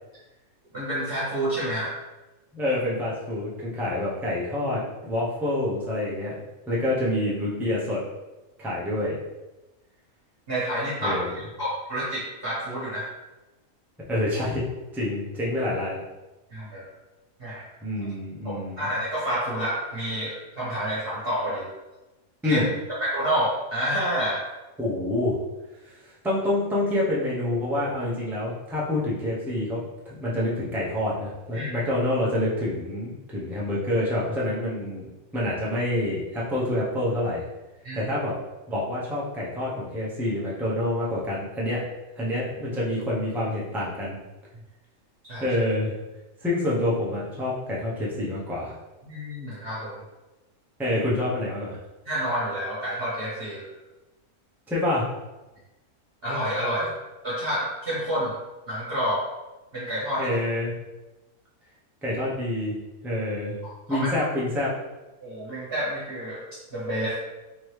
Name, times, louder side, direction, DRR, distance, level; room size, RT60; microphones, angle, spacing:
voice 1, 0.7-1.9 10.5-13.1 16.5-16.8 17.4-17.7 18.4-21.7 22.5-22.6 23.0-24.5 31.5-31.7 37.8-38.1 45.2-45.4 49.0-50.0 52.0-53.7 56.2-56.9 57.2-58.3 58.7-59.2 59.7-60.3 63.6-64.2 65.2-66.4 66.7-67.2, equal, 45° right, -9 dB, 1.2 m, -29 dB
voice 2, 2.5-6.3 6.7-8.0 8.6-9.2 11.0-11.3 14.1-14.7 14.9-16.0 17.8-18.8 22.4-22.7 24.8-25.4 25.9-26.0 26.2-35.1 35.3-37.4 37.9-38.3 38.7-41.8 42.2-44.2 45.4-45.9 46.4-48.7 50.8-51.8 54.7-55.1 60.2-60.7 62.0-62.8 63.0-63.6 63.9-64.7, left 1 dB, ahead, -6 dB, 0.5 m, -27 dB
3.6 x 3.0 x 3.2 m, 1.1 s
omnidirectional pair, 1.5 m